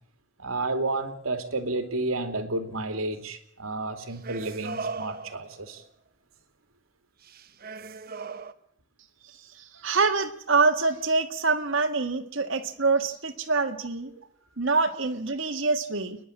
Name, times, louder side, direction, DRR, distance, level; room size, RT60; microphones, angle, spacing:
voice 1, 0.4-5.8, right 2 dB, 85° right, 7 dB, 2.7 m, -31 dB
sound 1, 4.0-5.8 7.2-8.5, right 4 dB, 45° right, 1.0 m, -37 dB
voice 2, 9.3-14.1 14.6-16.2, right 4 dB, 65° right, 5 dB, 1.7 m, -25 dB
29.5 x 11.0 x 8.7 m, 0.66 s
head